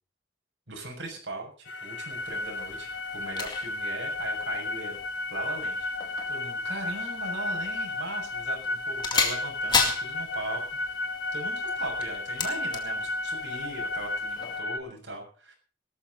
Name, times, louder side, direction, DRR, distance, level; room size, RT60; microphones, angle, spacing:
voice 1, 0.7-5.0 5.3-10.6 10.9-11.0 11.3-15.5, right 2 dB, 75° right, 1 dB, 6.7 m, -39 dB
sound 1, 1.7-14.8, left 2 dB, 75° left, 1.5 m, -33 dB
sound 2, 2.1-14.6, left 4 dB, 25° left, 2.2 m, -35 dB
18.5 x 13.5 x 4.1 m, 0.37 s
head